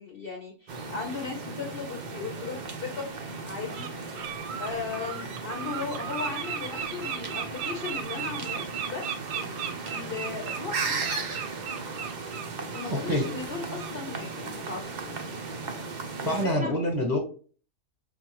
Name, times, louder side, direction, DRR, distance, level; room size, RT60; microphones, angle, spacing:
voice 1, 0.0-3.1 3.4-3.9 4.6-9.3 9.9-11.0 12.7-15.2 16.2-16.8, left 5 dB, 55° left, 0 dB, 0.7 m, -37 dB
sound 1, 0.7-16.5, right 4 dB, 65° right, 0.4 m, -36 dB
Bird, 2.1-2.2 2.9-3.1 3.5-3.9 4.1-12.9 13.2-13.4 13.8-13.9, right 8 dB, 85° right, 1.1 m, -36 dB
voice 2, 12.9-13.2 16.2-17.2, equal, 20° right, 0 dB, 0.7 m, -26 dB
5.7 x 2.3 x 2.9 m, 0.41 s
omnidirectional pair, 1.6 m